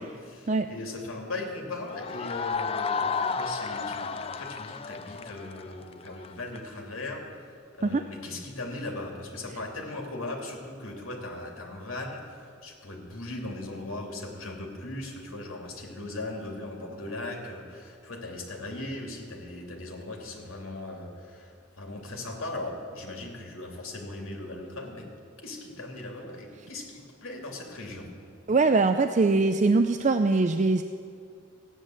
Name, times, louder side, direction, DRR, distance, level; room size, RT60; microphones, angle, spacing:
voice 1, 0.0-25.1 25.4-28.1, left 2 dB, 80° left, 1 dB, 2.8 m, -38 dB
sound 1, 1.9-6.6, left 5 dB, 30° left, 0.4 m, -32 dB
voice 2, 28.5-30.8, right 3 dB, 35° right, 8 dB, 0.4 m, -22 dB
15.0 x 10.0 x 7.8 m, 2.3 s
head